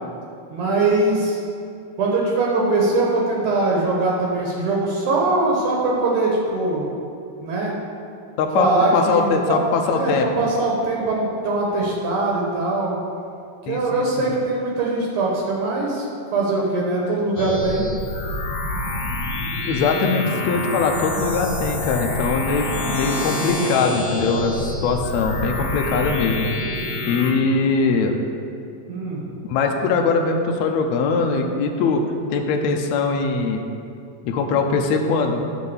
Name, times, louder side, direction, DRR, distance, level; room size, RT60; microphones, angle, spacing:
voice 1, 0.5-1.4 2.0-6.9 7.4-7.7 8.5-9.6 9.9-12.9 13.7-16.1 16.3-17.9 28.9-29.2, right 2 dB, 70° right, -3 dB, 2.5 m, -21 dB
voice 2, 8.4-10.3 13.7-14.0 19.7-26.5 27.1-28.2 29.4-33.6 34.2-35.4, left 4 dB, 90° left, 3 dB, 1.5 m, -21 dB
sound 1, 17.4-27.3, left 2 dB, 70° left, 2.3 m, -27 dB
10.0 x 3.8 x 7.1 m, 2.5 s
omnidirectional pair, 4.0 m